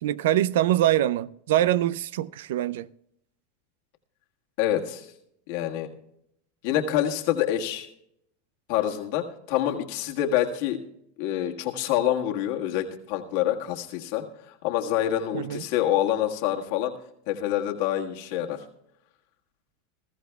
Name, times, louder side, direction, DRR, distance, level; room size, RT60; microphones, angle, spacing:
voice 1, 0.0-2.9 15.3-15.6, right 13 dB, 75° right, 0.4 m, -24 dB
voice 2, 4.6-5.1 5.5-5.9 6.6-7.9 8.7-10.8 11.2-16.9 17.3-18.6, left 11 dB, 65° left, 1.6 m, -26 dB
20.0 x 14.0 x 2.3 m
supercardioid pair, 115°, 0 cm